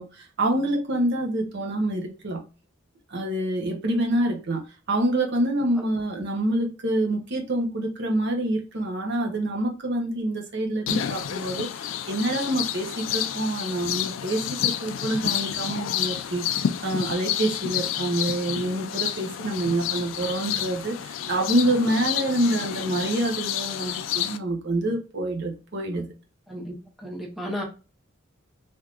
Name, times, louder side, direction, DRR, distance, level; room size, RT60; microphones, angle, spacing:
voice 1, 0.0-2.4 3.1-4.6 4.9-26.1, right 1 dB, 60° right, 0.9 m, -26 dB
sound 1, 10.9-24.4, left 10 dB, 70° left, 0.3 m, -30 dB
voice 2, 27.0-27.6, equal, ahead, 0.8 m, -33 dB
3.5 x 2.7 x 2.4 m
head